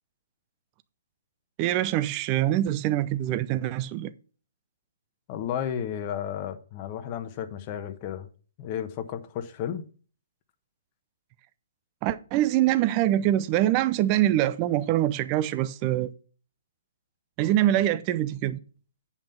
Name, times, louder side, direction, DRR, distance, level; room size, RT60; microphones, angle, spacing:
voice 1, 1.6-4.1 12.0-16.1 17.4-18.6, right 13 dB, 30° right, 0.6 m, -24 dB
voice 2, 5.3-8.3 8.6-9.9, left 9 dB, 30° left, 1.1 m, -33 dB
8.7 x 5.7 x 5.6 m
figure-of-eight pair, 130°, 0 cm